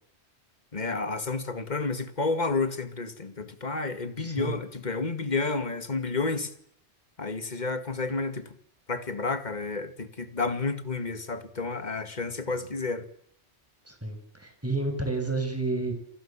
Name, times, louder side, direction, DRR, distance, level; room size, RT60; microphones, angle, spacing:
voice 1, 0.7-6.5 7.2-8.5 8.9-13.1, left 3 dB, 40° left, 2.2 m, -30 dB
voice 2, 4.2-4.6 13.8-15.9, right 2 dB, 10° right, 6.9 m, -30 dB
29.5 x 24.5 x 7.4 m
omnidirectional pair, 1.1 m